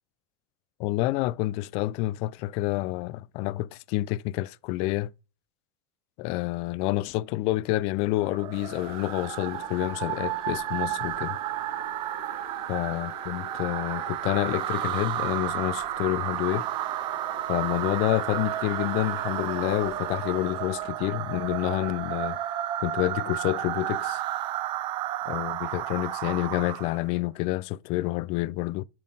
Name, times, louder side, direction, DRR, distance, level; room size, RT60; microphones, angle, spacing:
voice 1, 0.8-5.1 6.2-11.4 12.7-16.7 17.5-22.4 22.8-24.2 25.3-28.8, left 18 dB, 50° left, 0.4 m, -28 dB
sound 1, 8.2-27.1, right 14 dB, 40° right, 0.4 m, -32 dB
sound 2, 8.5-20.9, left 8 dB, 75° left, 2.9 m, -48 dB
7.5 x 3.8 x 3.9 m
supercardioid pair, 120°, 13 cm